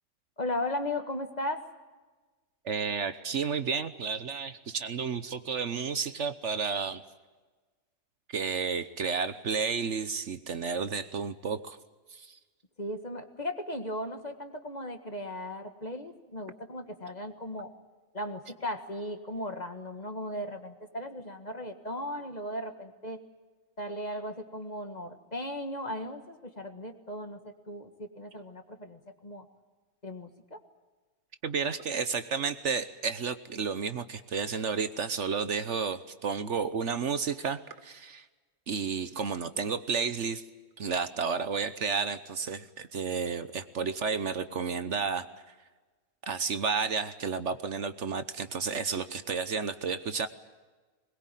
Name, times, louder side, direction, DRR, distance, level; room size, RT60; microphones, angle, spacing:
voice 1, 0.4-1.6 12.8-17.7 18.1-23.2 23.8-29.5 30.0-30.6, left 1 dB, 30° left, 7 dB, 1.7 m, -37 dB
voice 2, 2.6-7.0 8.3-11.8 12.1-12.4 31.4-38.3 38.7-40.4 40.8-45.3 46.2-50.3, right 5 dB, 60° right, 12 dB, 1.2 m, -32 dB
21.5 x 21.0 x 9.2 m, 1.3 s
omnidirectional pair, 1.5 m